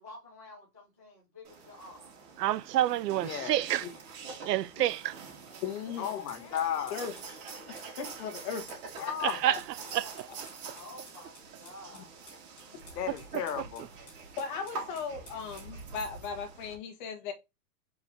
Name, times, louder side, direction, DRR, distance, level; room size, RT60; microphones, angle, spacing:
voice 1, 0.0-2.1 5.5-6.1 10.0-12.1 12.6-12.8 13.1-13.2, left 2 dB, 10° right, 0.3 m, -51 dB
sound 1, 1.4-16.7, right 4 dB, 60° right, 3.1 m, -46 dB
voice 2, 2.4-3.8 4.4-5.1 9.2-9.6 9.9-10.1 13.3-13.4, right 13 dB, 80° right, 0.7 m, -28 dB
voice 3, 3.2-3.6 6.0-7.1 9.0-9.4 12.9-13.9, left 8 dB, 75° left, 1.6 m, -34 dB
voice 4, 5.6-6.0 6.9-7.1 7.7-8.6 9.4-9.6 14.4-17.3, left 6 dB, 30° left, 1.4 m, -37 dB
sound 2, 6.3-15.8, left 1 dB, 10° left, 2.7 m, -55 dB
4.8 x 4.2 x 5.0 m
supercardioid pair, 175°, 48 cm